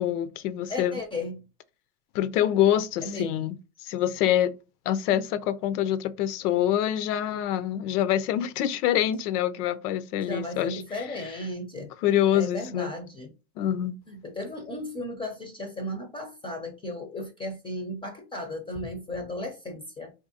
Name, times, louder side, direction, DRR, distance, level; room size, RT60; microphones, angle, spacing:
voice 1, 0.0-1.0 2.1-3.6 3.8-4.5 4.9-10.8 12.0-12.9 13.6-14.0, left 11 dB, 90° left, 0.6 m, -25 dB
voice 2, 0.7-1.4 3.0-3.5 10.3-11.9 12.3-13.3 14.1-20.1, left 1 dB, 15° left, 0.4 m, -35 dB
3.6 x 2.8 x 2.7 m
supercardioid pair, 130°, 44 cm